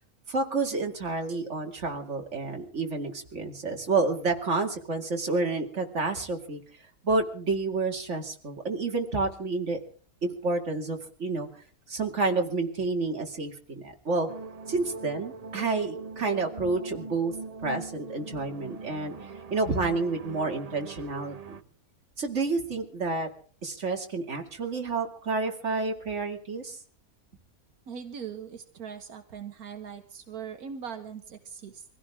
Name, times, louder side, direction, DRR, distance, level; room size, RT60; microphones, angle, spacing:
voice 1, 0.3-6.6 7.0-9.8 10.2-11.5 11.9-14.3 14.7-17.3 17.6-19.1 19.5-21.6 22.2-23.3 23.6-26.8, right 3 dB, 50° right, 3 dB, 2.8 m, -29 dB
sound 1, 14.3-21.6, right 4 dB, 35° right, 0.7 m, -41 dB
voice 2, 27.9-31.8, right 7 dB, 85° right, 6 dB, 1.8 m, -40 dB
24.5 x 16.0 x 3.6 m, 0.43 s
omnidirectional pair, 1.5 m